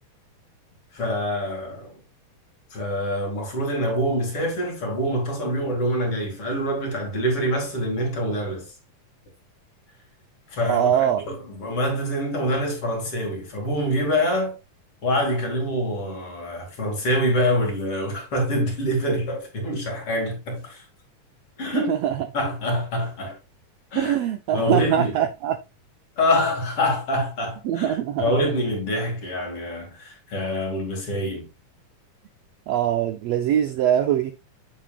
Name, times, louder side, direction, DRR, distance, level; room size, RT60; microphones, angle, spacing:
voice 1, 0.9-2.0 2.7-8.7 10.5-14.6 15.0-20.8 21.6-21.9 22.3-23.4 23.9-24.2 24.5-25.1 26.2-31.5, equal, 45° left, 3.5 m, -25 dB
voice 2, 10.7-11.2 21.7-22.2 24.0-25.6 27.6-28.2 32.7-34.3, right 10 dB, 85° right, 1.4 m, -22 dB
8.7 x 7.5 x 2.4 m
omnidirectional pair, 3.7 m